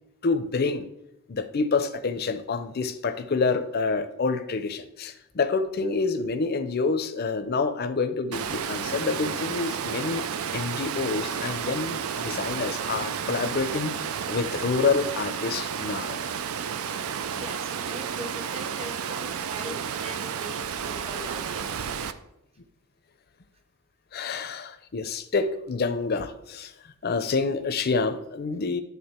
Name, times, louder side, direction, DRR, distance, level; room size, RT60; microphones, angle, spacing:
voice 1, 0.2-0.9 1.3-10.2 10.5-13.9 14.3-16.2 24.1-26.7 27.0-28.8, left 4 dB, 45° left, 10 dB, 0.5 m, -27 dB
Water, 8.3-22.1, right 7 dB, 80° right, 0.4 m, -32 dB
voice 2, 17.3-21.9, right 1 dB, 25° right, 5 dB, 0.8 m, -41 dB
10.5 x 3.5 x 4.3 m, 0.83 s
head